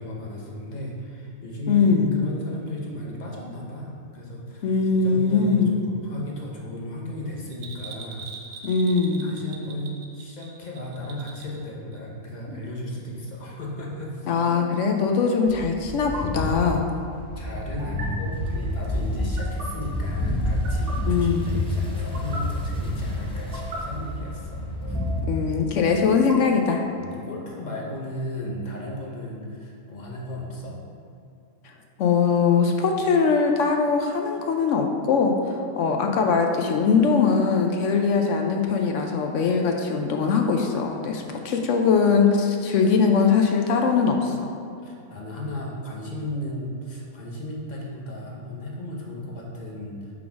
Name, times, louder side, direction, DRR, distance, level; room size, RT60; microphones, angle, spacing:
voice 1, 0.0-8.6 9.2-14.3 17.4-25.0 27.0-30.8 44.8-50.1, left 1 dB, 35° left, -3 dB, 0.9 m, -35 dB
voice 2, 1.7-2.2 4.6-5.7 8.6-9.3 14.3-16.9 21.1-21.5 25.2-26.8 32.0-44.5, left 5 dB, 65° left, 3 dB, 0.8 m, -21 dB
Bell, 7.5-11.6 11.9-12.0, right 5 dB, 80° right, 1.2 m, -42 dB
sound 1, 12.3-12.6 14.3-14.6 15.9-16.2 17.8-18.1 19.2-19.7 20.4-20.9 21.9-22.4 23.3-23.8 24.8-25.4 26.1-27.0, right 1 dB, 45° right, 1.0 m, -38 dB
sound 2, 15.5-25.2, left 1 dB, 10° left, 0.4 m, -29 dB
4.9 x 3.9 x 5.8 m, 2.6 s
omnidirectional pair, 1.5 m